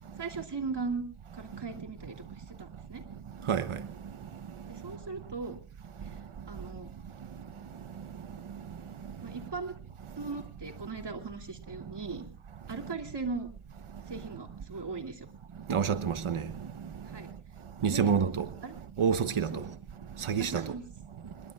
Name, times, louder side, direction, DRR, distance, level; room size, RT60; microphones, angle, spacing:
voice 1, 0.2-1.0 1.3-3.0 4.7-5.6 6.0-6.2 6.5-6.9 9.2-9.7 10.2-12.3 12.7-13.5 14.1-15.3 17.0-17.3 17.9-18.1 18.6-18.7 19.5-19.7 20.4-20.8, right 4 dB, 55° right, 2.6 m, -38 dB
voice 2, 15.7-16.4 17.8-18.4 19.0-19.5 20.3-20.6, right 7 dB, 85° right, 1.0 m, -27 dB
27.0 x 21.0 x 2.3 m
wide cardioid pair, 60°, 48 cm